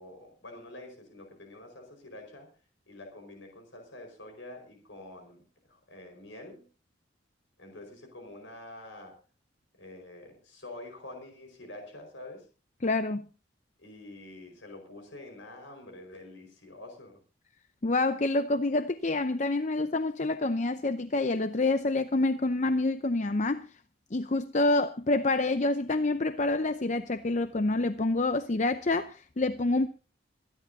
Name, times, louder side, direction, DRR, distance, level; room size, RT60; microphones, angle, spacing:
voice 1, 0.0-2.5 2.9-6.6 7.6-9.2 9.8-12.5 13.8-17.2, left 2 dB, 85° left, 5.0 m, -47 dB
voice 2, 12.8-13.3 17.8-23.7 24.1-29.9, left 2 dB, 40° left, 0.7 m, -27 dB
26.0 x 11.5 x 2.8 m
head